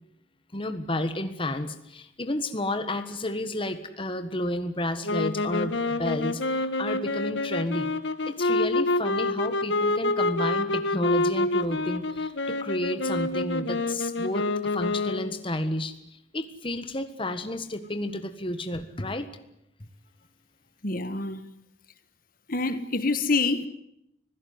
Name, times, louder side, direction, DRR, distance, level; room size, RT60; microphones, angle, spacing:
voice 1, 0.5-7.9 8.3-14.5 14.7-19.3, left 1 dB, 25° left, 1.5 m, -31 dB
sound 1, 5.0-15.4, left 2 dB, 65° left, 1.5 m, -27 dB
voice 2, 20.8-21.4 22.5-23.7, left 3 dB, 45° left, 1.5 m, -26 dB
25.5 x 16.5 x 9.5 m
head